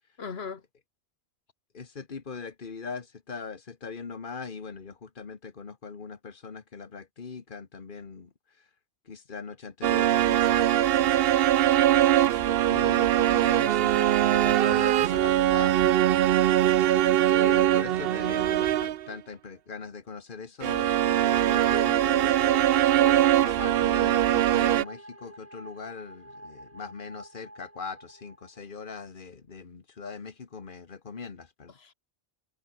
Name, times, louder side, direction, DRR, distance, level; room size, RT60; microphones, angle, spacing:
voice 1, 0.2-0.6 17.6-18.4 31.8-31.9, left 5 dB, 70° left, 1.7 m, -40 dB
voice 2, 1.7-8.3 9.1-15.8 17.3-31.7, left 5 dB, 50° left, 1.5 m, -41 dB
sound 1, 9.8-19.1 20.6-24.8, right 12 dB, 65° right, 0.7 m, -22 dB
sound 2, 20.9-28.6, right 1 dB, 10° right, 3.2 m, -43 dB
omnidirectional pair, 1.1 m